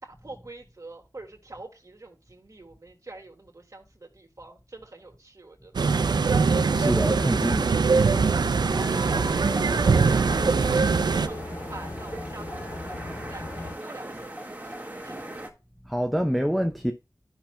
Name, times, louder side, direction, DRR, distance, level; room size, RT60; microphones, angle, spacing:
voice 1, 0.0-5.8 8.6-15.2, right 2 dB, 50° right, 1.9 m, -45 dB
sound 1, 5.7-11.3, right 5 dB, 80° right, 0.4 m, -22 dB
sound 2, 5.8-13.7, left 2 dB, 70° left, 2.7 m, -37 dB
voice 2, 6.7-7.7 15.9-16.9, equal, ahead, 0.6 m, -26 dB
sound 3, 8.8-15.5, right 1 dB, 20° right, 1.7 m, -38 dB
12.5 x 5.8 x 2.2 m
wide cardioid pair, 55°, 7 cm